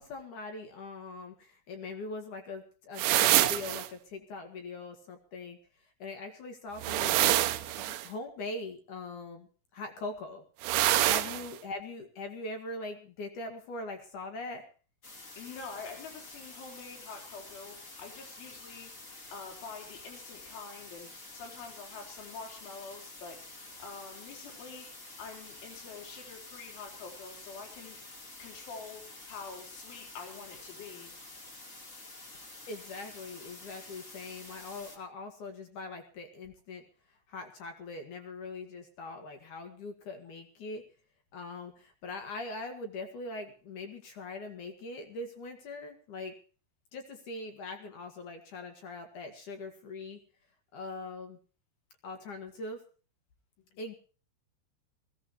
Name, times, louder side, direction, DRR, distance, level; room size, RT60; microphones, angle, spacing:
voice 1, 0.0-5.6 6.0-9.5 9.7-10.4 11.0-14.7 32.7-36.8 37.3-40.8 41.3-46.4 46.9-50.2 50.7-51.4 52.0-52.8 53.8-54.0, left 2 dB, 55° left, 5 dB, 2.6 m, -41 dB
sound 1, 3.0-3.9 6.8-8.1 10.6-11.5, right 15 dB, 85° right, 3.3 m, -26 dB
sound 2, 15.0-35.0, left 2 dB, 30° left, 1.6 m, -49 dB
voice 2, 15.4-18.9 19.3-23.4 23.8-24.9 25.2-28.0 28.4-31.1 53.7-53.8, left 5 dB, 80° left, 1 dB, 6.4 m, -46 dB
20.5 x 16.0 x 3.0 m, 0.38 s
omnidirectional pair, 5.4 m